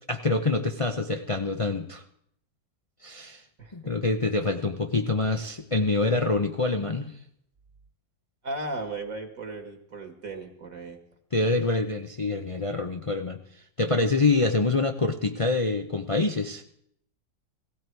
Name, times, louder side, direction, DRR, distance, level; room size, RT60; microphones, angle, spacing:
voice 1, 0.1-2.0 3.0-3.4 3.7-7.1 11.3-13.4 13.8-16.6, left 3 dB, 50° left, 6 dB, 0.3 m, -26 dB
voice 2, 3.6-3.9 8.4-11.0, right 2 dB, 50° right, 6 dB, 2.0 m, -36 dB
18.0 x 16.5 x 4.6 m, 0.70 s
omnidirectional pair, 1.9 m